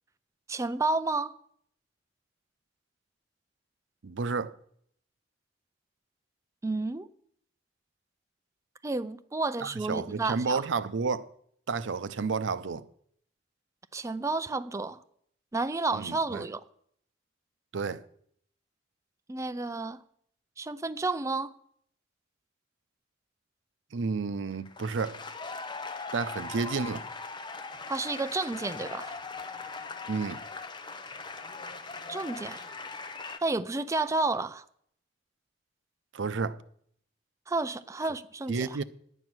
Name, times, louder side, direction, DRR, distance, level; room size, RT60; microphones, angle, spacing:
voice 1, 0.5-1.3 6.6-7.1 8.8-10.6 13.9-15.0 15.5-16.6 19.3-20.0 20.6-21.5 27.9-29.1 32.1-32.7 33.4-34.6 37.5-38.8, right 3 dB, 15° right, 0.4 m, -31 dB
voice 2, 4.0-4.6 9.6-11.3 11.7-12.8 15.9-16.4 17.7-18.0 23.9-25.2 26.1-27.0 30.1-30.4 36.1-36.6 38.5-38.8, right 4 dB, 90° right, 0.6 m, -31 dB
sound 1, 24.5-33.4, left 4 dB, 25° left, 0.8 m, -40 dB
10.5 x 9.0 x 6.1 m
head